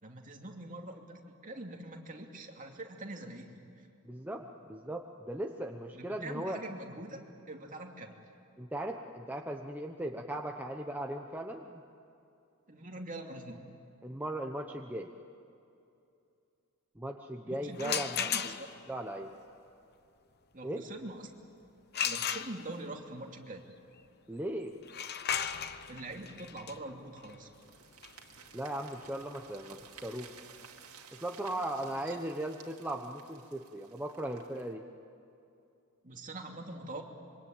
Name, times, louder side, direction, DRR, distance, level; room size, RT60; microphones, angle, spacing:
voice 1, 0.0-3.9 5.9-7.2 7.5-8.2 12.7-13.6 17.5-18.7 20.5-21.3 22.0-23.6 25.9-27.5 31.9-32.2 36.0-37.0, right 2 dB, 40° right, 2 dB, 2.7 m, -44 dB
voice 2, 4.0-6.6 8.6-11.8 14.0-15.1 17.0-18.3 18.9-19.3 20.6-20.9 24.3-24.7 28.5-30.3 31.2-34.8, right 1 dB, 10° right, 2 dB, 1.0 m, -38 dB
sound 1, 17.7-18.9 21.9-23.0 24.8-30.5, left 8 dB, 50° left, 0.9 m, -36 dB
sound 2, 27.5-34.7, right 7 dB, 90° right, 2.5 m, -55 dB
26.0 x 23.5 x 8.9 m, 2.6 s
head